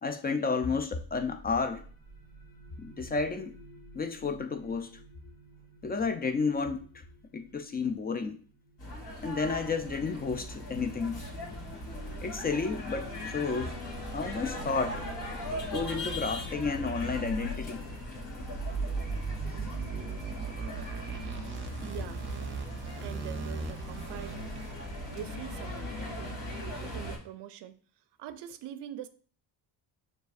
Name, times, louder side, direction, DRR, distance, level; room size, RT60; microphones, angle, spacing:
voice 1, 0.0-1.9 2.8-3.6 3.9-5.0 5.8-7.0 7.3-8.4 9.2-11.2 12.2-13.8 14.1-15.0 15.7-17.9, left 4 dB, 25° left, 0.3 m, -31 dB
sound 1, 1.0-12.4, right 1 dB, 55° left, 1.2 m, -55 dB
sound 2, 8.8-27.2, left 1 dB, 75° left, 2.2 m, -39 dB
sound 3, 13.9-24.7, right 4 dB, 30° right, 0.6 m, -39 dB
voice 2, 21.8-22.3 23.0-24.7 25.1-26.4 26.8-27.8 28.2-29.1, right 11 dB, 70° right, 0.6 m, -44 dB
6.8 x 2.5 x 2.4 m
cardioid pair, 90°, 43 cm